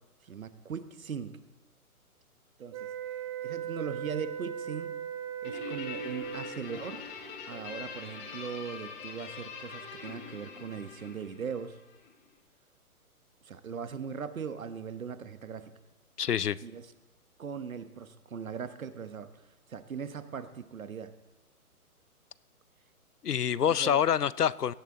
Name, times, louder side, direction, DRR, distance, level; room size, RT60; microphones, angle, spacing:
voice 1, 0.2-1.3 2.6-2.9 3.4-5.0 5.4-7.1 7.5-11.8 13.4-15.7 16.6-16.9 17.4-19.3 19.7-21.1 23.6-24.0, right 6 dB, 65° right, 1.2 m, -39 dB
sound 1, 2.7-6.6, right 9 dB, 20° right, 0.9 m, -38 dB
Guitar, 5.4-12.1, left 5 dB, 30° left, 2.6 m, -43 dB
voice 2, 16.2-16.6 23.2-24.7, left 9 dB, 90° left, 0.6 m, -26 dB
16.5 x 12.0 x 3.8 m
figure-of-eight pair, 130°, 45 cm